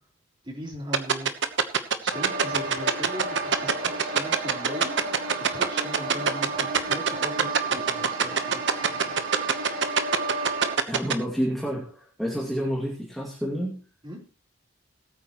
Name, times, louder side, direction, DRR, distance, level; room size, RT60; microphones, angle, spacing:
voice 1, 0.4-1.3 2.0-4.9 5.3-9.1 14.0-14.2, equal, 25° right, -1 dB, 3.8 m, -39 dB
sound 1, 0.9-11.1, right 6 dB, 55° right, 1.1 m, -21 dB
sound 2, 2.1-10.7, right 3 dB, 80° right, 3.1 m, -32 dB
voice 2, 10.8-13.8, equal, ahead, -4 dB, 2.4 m, -29 dB
20.0 x 8.9 x 3.1 m, 0.34 s
head